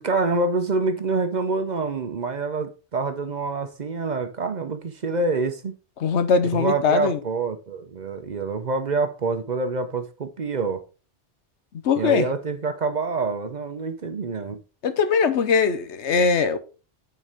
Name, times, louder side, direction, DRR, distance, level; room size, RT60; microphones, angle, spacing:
voice 1, 0.0-5.8 6.5-10.8 12.0-14.6, right 3 dB, 45° right, 0.7 m, -26 dB
voice 2, 6.0-7.2 11.8-12.3 14.8-16.6, left 5 dB, 75° left, 1.1 m, -21 dB
8.9 x 4.5 x 3.5 m
omnidirectional pair, 1.2 m